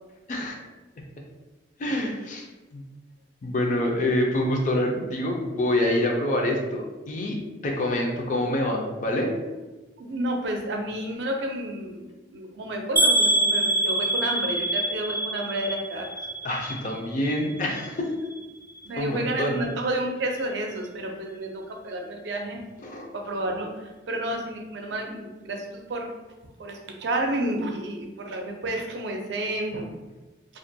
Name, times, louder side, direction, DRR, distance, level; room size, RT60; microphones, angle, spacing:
voice 1, 1.8-2.5 2.7-2.8 3.4-7.4 7.6-9.3 16.4-18.1 19.0-19.6 22.8-23.1, left 1 dB, 45° left, 1 dB, 0.4 m, -26 dB
voice 2, 10.0-12.1 12.3-16.1 18.8-22.6 23.1-23.7 24.1-25.6 25.9-26.1 26.6-29.9, right 1 dB, 75° right, 2 dB, 0.4 m, -30 dB
sound 1, 13.0-16.9 17.2-17.8 18.3-18.4 18.8-18.9, right 1 dB, 15° right, 0.4 m, -25 dB
2.4 x 2.1 x 2.6 m, 1.1 s
head